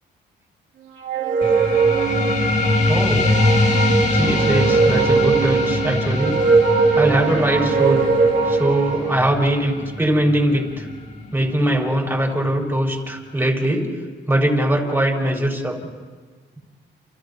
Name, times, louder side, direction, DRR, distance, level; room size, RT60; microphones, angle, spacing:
sound 1, 1.0-9.2, right 5 dB, 80° right, 2.3 m, -20 dB
sound 2, 1.4-12.5, left 2 dB, 35° left, 2.4 m, -23 dB
voice 1, 2.9-3.3 4.1-6.4 6.9-8.1 8.5-10.9 11.3-13.9 14.3-15.8, right 1 dB, 10° right, 0 dB, 5.9 m, -21 dB
30.0 x 29.5 x 3.0 m, 1.5 s
cardioid pair, 90°, 20 cm